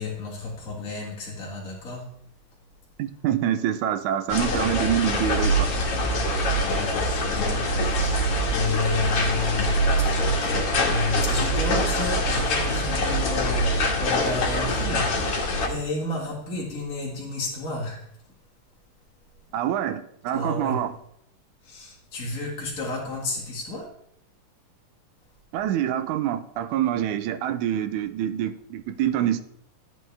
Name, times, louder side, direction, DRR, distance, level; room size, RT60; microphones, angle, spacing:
voice 1, 0.0-2.1 6.6-7.6 8.0-15.4 15.6-18.0 20.3-20.8 21.6-23.9, left 2 dB, 30° left, -4 dB, 1.8 m, -31 dB
voice 2, 3.0-5.8 19.5-20.9 25.5-29.4, right 11 dB, 75° right, 11 dB, 1.9 m, -26 dB
sound 1, 4.3-15.7, equal, 50° left, 2.2 m, -24 dB
13.5 x 8.6 x 3.4 m, 0.72 s
omnidirectional pair, 3.8 m